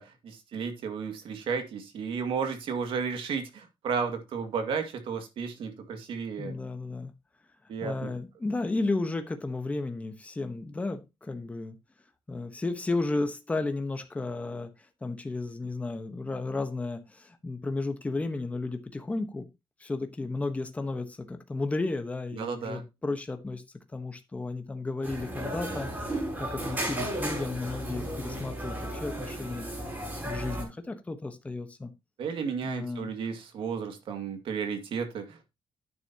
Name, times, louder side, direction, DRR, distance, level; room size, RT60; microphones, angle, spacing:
voice 1, 0.0-6.5 7.7-8.1 22.3-22.8 32.2-35.5, right 6 dB, 90° right, 2.2 m, -33 dB
voice 2, 6.4-7.1 7.8-11.8 12.3-14.7 15.0-19.5 19.8-23.6 23.9-29.7 30.2-31.9 32.6-33.1, left 3 dB, 15° left, 1.2 m, -33 dB
sound 1, 25.0-30.6, right 1 dB, 20° right, 5.2 m, -34 dB
10.5 x 9.5 x 2.9 m
wide cardioid pair, 165°, 9 cm